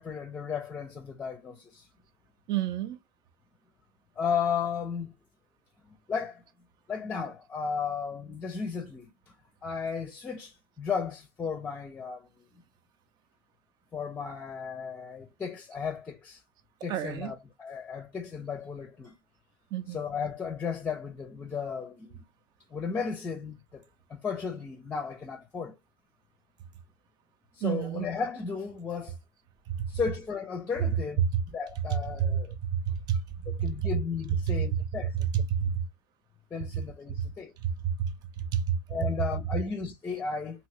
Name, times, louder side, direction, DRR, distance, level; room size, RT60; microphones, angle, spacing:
voice 1, 0.0-1.9 4.2-5.1 5.9-6.4 6.9-9.1 9.6-12.3 13.9-16.4 16.8-19.2 19.9-22.2 22.7-23.8 24.1-25.8 27.6-29.2 29.9-32.5 33.5-35.5 36.5-37.5 38.9-40.7, left 6 dB, 15° left, 0.6 m, -34 dB
voice 2, 2.5-3.0 16.9-17.4 19.7-20.0 27.6-28.1 29.8-29.9 31.2-31.4 32.2-33.2 33.4-33.7 34.5-34.6 35.5-35.8 37.6-38.8, right 8 dB, 40° right, 0.6 m, -29 dB
2.8 x 2.7 x 3.1 m
hypercardioid pair, 120°, 11 cm